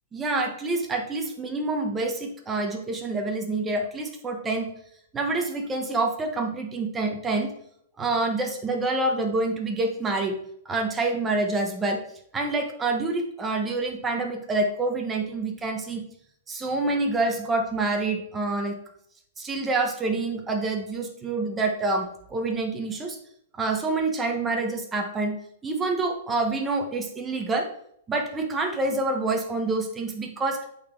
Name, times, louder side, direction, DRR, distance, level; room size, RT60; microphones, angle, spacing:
voice 1, 0.1-4.7 5.1-7.5 8.0-10.4 10.6-12.0 12.3-16.0 16.5-18.8 19.4-23.2 23.6-25.3 25.6-27.7 28.1-30.7, right 2 dB, 15° right, 3 dB, 1.2 m, -27 dB
8.3 x 4.4 x 4.4 m, 0.70 s
hypercardioid pair, 150°, 0 cm